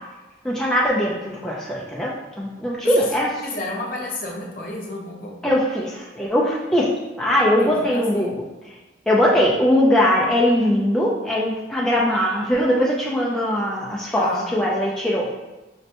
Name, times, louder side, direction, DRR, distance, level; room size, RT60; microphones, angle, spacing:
voice 1, 0.4-3.3 5.4-6.9 7.2-8.3 9.1-15.3, equal, 5° left, -5 dB, 0.3 m, -20 dB
voice 2, 2.8-3.2 3.4-5.4 7.6-8.4 14.1-14.5, left 2 dB, 45° left, -2 dB, 0.6 m, -31 dB
5.1 x 2.2 x 2.8 m, 1.1 s
head